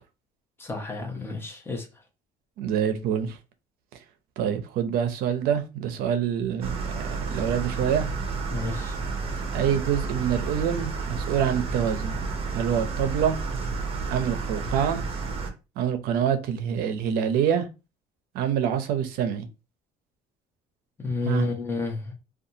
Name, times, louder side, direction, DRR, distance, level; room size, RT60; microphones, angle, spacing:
voice 1, 0.6-1.9 8.5-9.0 21.0-22.1, left 3 dB, 15° left, 0.7 m, -30 dB
voice 2, 2.6-3.4 4.4-8.1 9.5-12.1 12.5-13.4 14.1-15.0 15.8-17.7 18.3-19.5 21.2-21.5, right 8 dB, 75° right, 0.5 m, -26 dB
sound 1, 6.6-15.5, right 4 dB, 40° right, 0.7 m, -31 dB
2.6 x 2.3 x 2.7 m
cardioid pair, 135°, 16 cm